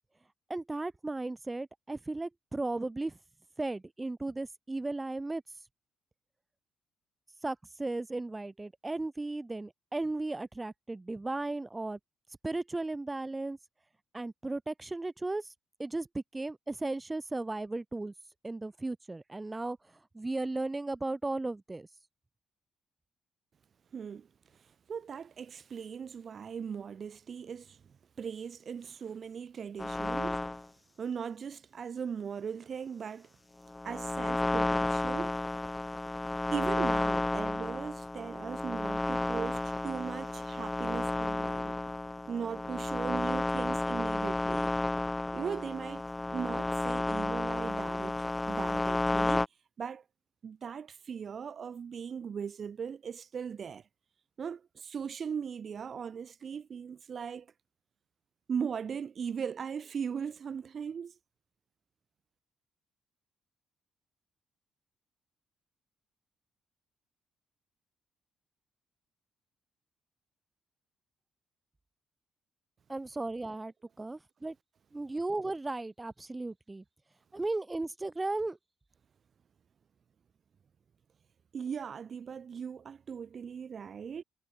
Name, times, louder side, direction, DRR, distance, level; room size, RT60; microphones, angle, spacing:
voice 1, 0.5-3.2 3.6-5.4 7.4-12.0 12.4-13.6 14.1-15.5 15.8-18.1 18.4-19.8 20.1-21.9 72.9-74.5 74.9-76.8 77.3-78.6, right 2 dB, 20° right, 1.7 m, -35 dB
voice 2, 23.9-27.9 28.2-30.6 31.0-33.3 33.8-35.4 36.5-41.8 42.3-44.7 45.3-49.4 49.8-50.0 50.4-53.9 54.4-57.5 58.5-61.2 81.5-84.2, right 7 dB, 50° right, 1.2 m, -39 dB
sound 1, 29.8-30.6 33.7-49.5, left 2 dB, 15° left, 0.4 m, -32 dB
cardioid pair, 90°, 0 cm